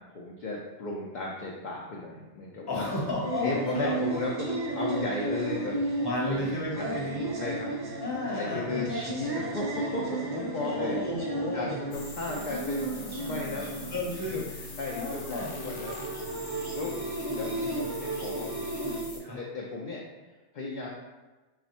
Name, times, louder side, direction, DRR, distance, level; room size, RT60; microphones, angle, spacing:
voice 1, 0.1-2.9 3.4-4.5 4.8-5.8 6.2-7.0 7.3-8.0 8.3-11.0 11.5-13.7 14.3-14.4 14.8-16.0 16.7-17.0 17.3-18.6 19.1-20.0 20.5-20.9, left 3 dB, 55° left, -3 dB, 0.6 m, -35 dB
voice 2, 2.7-3.9 6.0-7.3 8.0-9.1 10.6-11.8 13.9-15.5 19.2-19.4, left 2 dB, 25° left, -4 dB, 0.8 m, -33 dB
sound 1, 2.8-19.0, right 2 dB, 25° right, 0.6 m, -34 dB
sound 2, 11.9-19.2, left 3 dB, 85° left, 1.0 m, -44 dB
3.3 x 2.4 x 4.1 m, 1.2 s
omnidirectional pair, 1.2 m